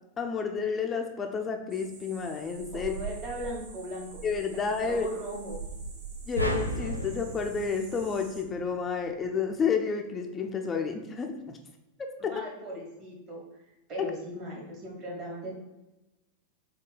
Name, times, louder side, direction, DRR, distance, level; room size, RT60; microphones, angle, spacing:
voice 1, 0.2-2.9 4.2-5.1 6.3-11.6 12.2-12.3 14.0-14.1, left 5 dB, 20° left, 3 dB, 0.5 m, -30 dB
sound 1, 1.7-8.4, right 5 dB, 55° right, 1.0 m, -44 dB
voice 2, 2.7-4.2 4.8-5.6 12.2-13.6 13.9-15.5, right 1 dB, 35° right, -2 dB, 1.5 m, -38 dB
sound 2, 6.4-8.8, right 1 dB, 90° right, 0.4 m, -33 dB
4.7 x 2.2 x 3.8 m, 1.0 s
figure-of-eight pair, 90°, 0 cm